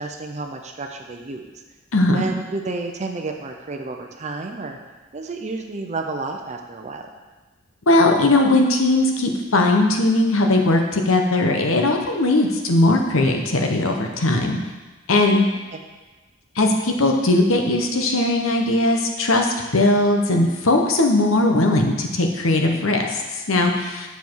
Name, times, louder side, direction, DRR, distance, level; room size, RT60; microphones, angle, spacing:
voice 1, 0.0-1.5 2.1-4.8 5.1-7.1 15.7-15.8, right 3 dB, 35° right, 3 dB, 0.6 m, -30 dB
voice 2, 1.9-2.2 7.9-14.6 15.1-15.5 16.6-24.1, left 2 dB, 80° left, 3 dB, 1.1 m, -19 dB
7.4 x 6.9 x 4.7 m, 1.2 s
head